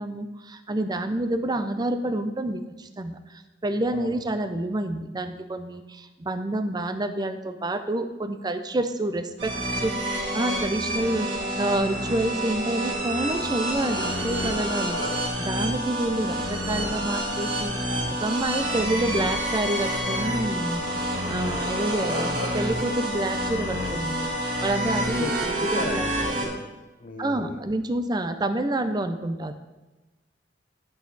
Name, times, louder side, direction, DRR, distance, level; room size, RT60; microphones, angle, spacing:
voice 1, 0.0-3.2 3.6-9.9 10.3-15.0 15.4-17.7 18.2-20.8 21.3-24.3 24.6-26.1 27.2-29.5, right 1 dB, 25° right, 9 dB, 0.5 m, -28 dB
sound 1, 9.4-26.5, equal, 85° right, 2.8 m, -28 dB
voice 2, 25.6-26.6 27.0-27.6, left 2 dB, 50° left, 5 dB, 1.0 m, -35 dB
11.0 x 6.4 x 4.0 m, 1.1 s
head